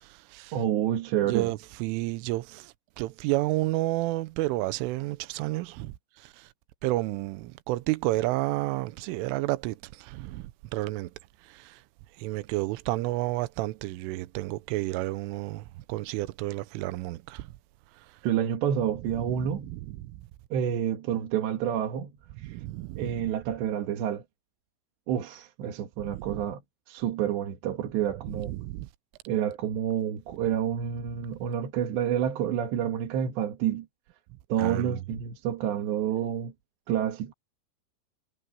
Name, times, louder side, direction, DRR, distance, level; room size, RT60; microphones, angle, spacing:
voice 1, 0.0-0.5 1.3-5.9 6.2-6.5 6.8-11.1 11.5-11.8 12.2-17.5 19.4-20.1 22.4-23.2 26.0-26.4 28.3-28.9 34.6-35.0, right 18 dB, 85° right, 3.3 m, -31 dB
voice 2, 0.5-1.5 18.2-19.7 20.5-22.1 22.4-22.6 23.0-24.2 25.1-26.6 26.9-28.5 29.3-33.9 34.5-36.5 36.9-37.3, right 9 dB, 65° right, 3.8 m, -28 dB
omnidirectional pair, 5.6 m